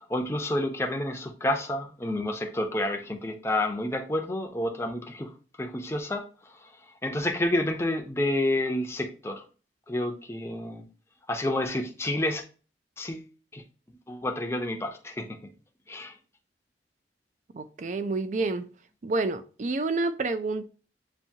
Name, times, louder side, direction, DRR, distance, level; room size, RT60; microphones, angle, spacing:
voice 1, 0.1-5.3 5.6-6.2 7.0-9.4 9.9-10.8 11.3-12.4 13.0-13.2 13.5-13.6 14.1-15.4 15.9-16.1, left 1 dB, 15° left, 3 dB, 0.6 m, -29 dB
voice 2, 17.5-18.7 19.0-20.7, right 3 dB, 40° right, 11 dB, 0.4 m, -29 dB
7.1 x 2.7 x 2.7 m, 0.36 s
head